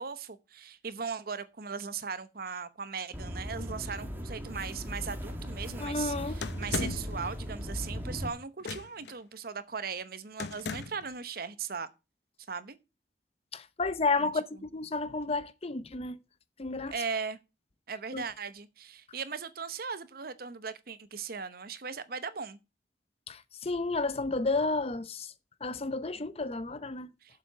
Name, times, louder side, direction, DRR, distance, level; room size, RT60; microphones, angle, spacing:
voice 1, 0.0-11.9 12.5-12.8 14.2-14.6 16.9-17.4 17.9-22.6 27.2-27.4, right 5 dB, 55° right, 0.9 m, -38 dB
sound 1, 3.1-8.3, equal, 10° right, 1.8 m, -38 dB
voice 2, 5.8-6.4 13.5-16.2 16.6-16.9 18.1-18.2 23.3-25.3 25.6-27.1, left 3 dB, 35° left, 0.7 m, -31 dB
sound 2, 6.4-7.2 8.6-9.1 10.4-11.1, left 4 dB, 70° left, 0.9 m, -36 dB
7.6 x 7.5 x 6.7 m
head